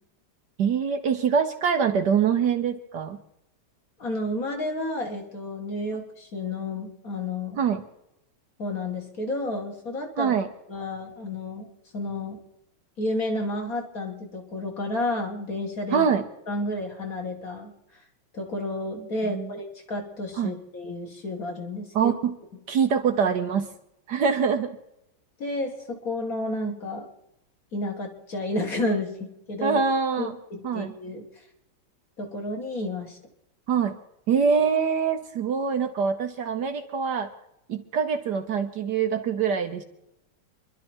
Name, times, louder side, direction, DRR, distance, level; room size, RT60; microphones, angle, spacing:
voice 1, 0.6-3.2 7.6-7.8 10.2-10.5 15.9-16.2 19.2-19.5 20.4-20.5 21.9-22.3 22.7-23.7 24.1-24.8 29.6-30.4 30.6-30.9 33.7-34.0 34.3-37.3 37.7-39.8, right 6 dB, 60° right, 7 dB, 1.3 m, -24 dB
voice 2, 4.0-7.6 8.6-10.4 10.7-11.7 11.9-12.4 13.0-16.1 16.5-17.7 18.3-22.1 25.4-27.1 27.7-29.8 30.2-31.3 32.2-33.2, left 1 dB, 45° left, 1 dB, 2.3 m, -31 dB
28.0 x 11.5 x 4.4 m, 0.85 s
omnidirectional pair, 2.2 m